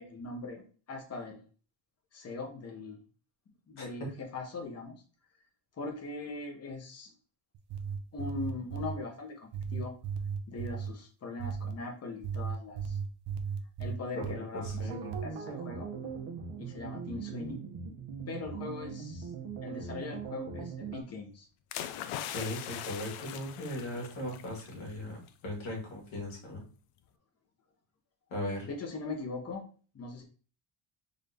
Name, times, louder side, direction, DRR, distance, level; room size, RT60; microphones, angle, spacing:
voice 1, 0.0-1.4 2.1-3.0 3.7-5.0 5.8-7.1 8.1-9.9 10.5-13.0 13.8-15.9 16.6-17.6 18.3-19.3 19.6-21.5 28.6-29.6 29.9-30.2, left 3 dB, 30° left, 3 dB, 0.9 m, -40 dB
voice 2, 3.8-4.1 14.2-15.0 22.3-26.6 28.3-28.7, left 1 dB, 70° left, -1 dB, 2.0 m, -38 dB
sound 1, 7.5-9.0 9.5-10.9 11.4-11.8 12.2-14.4 14.6-15.3, right 6 dB, 55° right, 0.6 m, -35 dB
sound 2, 14.9-21.0, right 6 dB, 75° right, 0.9 m, -41 dB
sound 3, 21.7-24.7 25.1-25.3, left 11 dB, 90° left, 0.6 m, -41 dB
3.9 x 2.7 x 3.4 m, 0.39 s
cardioid pair, 145°, 49 cm